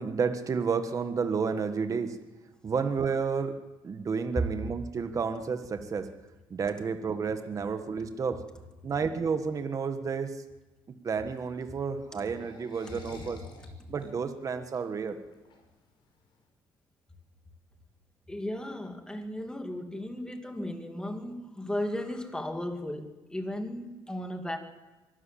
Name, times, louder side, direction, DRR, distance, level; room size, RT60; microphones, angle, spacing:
voice 1, 0.0-2.2 2.6-3.6 3.8-6.1 6.5-8.4 8.8-10.4 11.0-13.4 13.9-15.2, right 5 dB, 35° right, 8 dB, 1.5 m, -31 dB
sound 1, 11.2-16.4, left 4 dB, 60° left, 5.4 m, -51 dB
voice 2, 18.3-24.6, left 1 dB, 10° left, 5 dB, 2.5 m, -35 dB
23.5 x 13.0 x 8.7 m, 1.1 s
cardioid pair, 110°, 9 cm